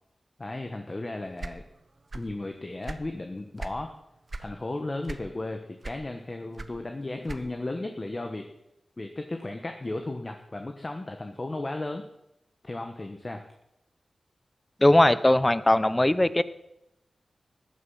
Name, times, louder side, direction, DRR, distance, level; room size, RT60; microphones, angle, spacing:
voice 1, 0.4-1.6 2.1-3.9 4.4-8.5 9.0-12.1 12.6-13.5, left 2 dB, 35° left, 5 dB, 1.3 m, -35 dB
sound 1, 1.4-2.4 2.7-3.8 4.3-4.6 5.0-5.5 5.8-7.7, right 3 dB, 40° right, 1.0 m, -38 dB
voice 2, 14.8-16.4, left 1 dB, 20° left, 15 dB, 0.8 m, -20 dB
14.5 x 10.0 x 5.6 m, 0.84 s
wide cardioid pair, 70°, 0 cm